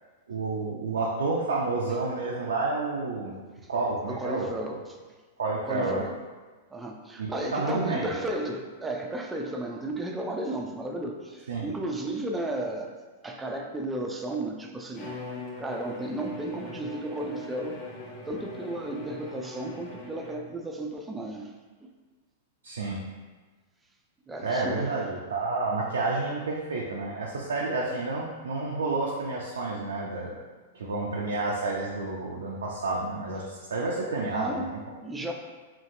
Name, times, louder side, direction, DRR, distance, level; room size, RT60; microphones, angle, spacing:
voice 1, 0.3-3.3 3.7-4.5 5.4-6.0 7.2-8.1 11.5-11.6 22.6-23.0 24.4-30.4 30.7-34.6, right 3 dB, 75° right, -3 dB, 0.4 m, -30 dB
voice 2, 4.1-5.0 5.6-6.2 6.7-12.9 13.2-15.2 15.6-17.8 18.3-21.5 21.8-21.9 24.3-24.9 34.2-35.3, right 1 dB, 10° right, 2 dB, 0.4 m, -34 dB
Bowed string instrument, 14.9-20.6, left 2 dB, 30° left, 0.7 m, -41 dB
2.8 x 2.7 x 2.5 m, 1.4 s
hypercardioid pair, 105°, 0 cm